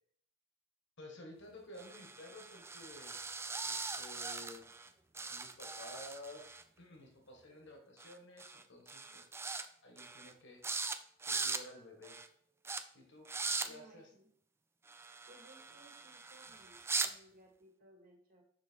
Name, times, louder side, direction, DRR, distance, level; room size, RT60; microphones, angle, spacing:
voice 1, 1.0-3.2 3.6-4.6 5.3-9.3 9.8-10.6 11.3-12.2 12.9-13.3 13.7-14.1, left 1 dB, 60° left, 2 dB, 1.9 m, -53 dB
sound 1, 1.8-4.9 5.1-6.6 8.0-8.1 8.4-8.6 8.9-9.6 10.0-10.3 10.6-11.0 11.2-11.6 12.0-12.3 12.6-12.8 13.2-13.7 14.9-17.1, right 4 dB, 10° right, 0.4 m, -40 dB
voice 2, 13.6-14.3 15.3-18.4, right 1 dB, 45° right, 0 dB, 1.8 m, -61 dB
6.3 x 5.8 x 4.6 m, 0.63 s
head